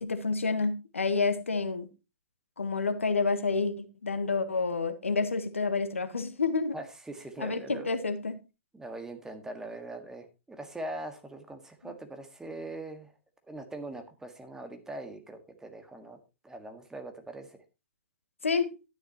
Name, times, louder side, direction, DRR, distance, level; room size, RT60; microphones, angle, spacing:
voice 1, 0.0-1.9 2.6-6.8 7.4-8.4 11.8-11.9 18.4-18.7, left 4 dB, 80° left, 1.4 m, -29 dB
voice 2, 6.7-7.9 8.7-13.1 13.5-16.2 16.4-17.6, right 2 dB, 5° right, 1.8 m, -42 dB
12.5 x 10.5 x 3.0 m
figure-of-eight pair, 110°, 7 cm